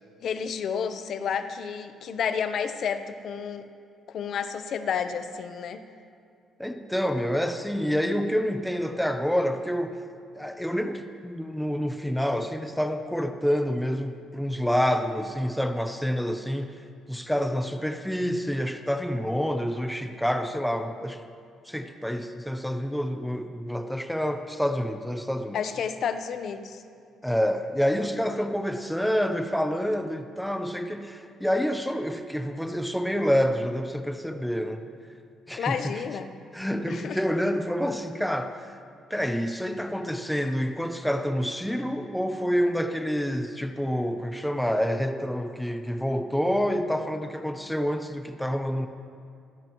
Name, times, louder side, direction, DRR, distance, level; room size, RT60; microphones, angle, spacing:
voice 1, 0.2-3.7 4.1-5.8 25.5-26.8 35.6-36.3 36.9-37.2, left 7 dB, 50° left, 9 dB, 0.8 m, -30 dB
voice 2, 6.6-10.0 10.4-16.7 17.1-21.2 21.7-25.6 27.2-34.8 35.5-36.0 36.5-38.7 39.1-48.9, equal, ahead, 6 dB, 0.7 m, -28 dB
27.5 x 16.0 x 3.1 m, 2.4 s
cardioid pair, 165°, 0 cm